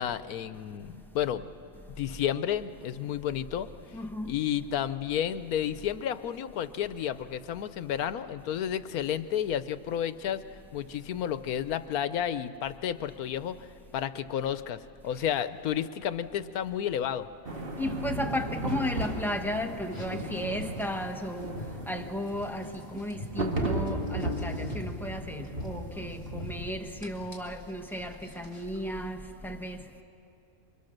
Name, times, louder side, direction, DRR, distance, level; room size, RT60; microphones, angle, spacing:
voice 1, 0.0-1.5 2.0-3.7 4.2-10.4 10.7-13.7 13.9-17.3, left 10 dB, 90° left, 1.3 m, -31 dB
voice 2, 3.9-4.3 17.8-21.5 21.9-22.7 22.9-29.2 29.4-29.8, left 1 dB, ahead, 1.2 m, -34 dB
sound 1, 17.4-26.6, right 2 dB, 40° right, 2.0 m, -35 dB
Car, 19.8-28.8, left 3 dB, 20° left, 3.0 m, -45 dB
27.5 x 24.0 x 6.6 m
omnidirectional pair, 1.5 m